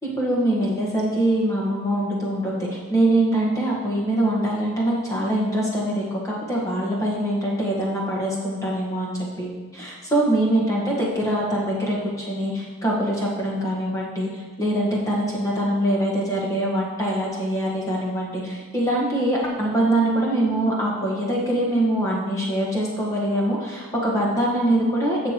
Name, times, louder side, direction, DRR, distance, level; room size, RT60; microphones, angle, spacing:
voice 1, 0.2-25.2, right 1 dB, 15° left, -4 dB, 1.4 m, -23 dB
12.0 x 6.7 x 3.0 m, 1.3 s
head